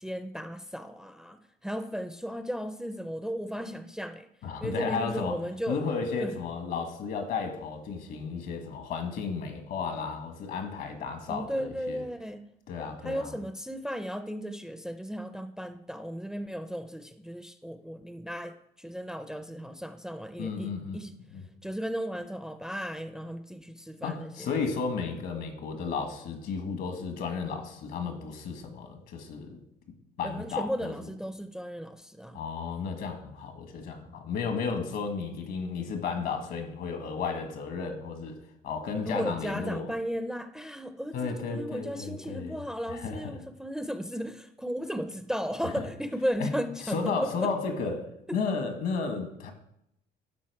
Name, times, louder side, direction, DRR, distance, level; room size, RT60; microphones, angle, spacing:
voice 1, 0.0-4.3 4.6-5.9 6.2-6.3 11.3-12.4 13.0-21.1 21.6-24.5 30.2-32.4 39.0-47.5, equal, 5° right, 9 dB, 0.5 m, -35 dB
voice 2, 4.4-5.4 5.7-12.0 12.7-13.3 20.4-21.0 21.3-21.4 24.0-29.6 30.2-30.9 32.3-38.4 38.6-39.9 41.1-42.6 42.9-43.4 45.8-45.9 46.4-46.5 46.8-49.5, left 5 dB, 70° left, 6 dB, 1.5 m, -33 dB
12.0 x 4.1 x 4.7 m, 0.78 s
cardioid pair, 110°, 17 cm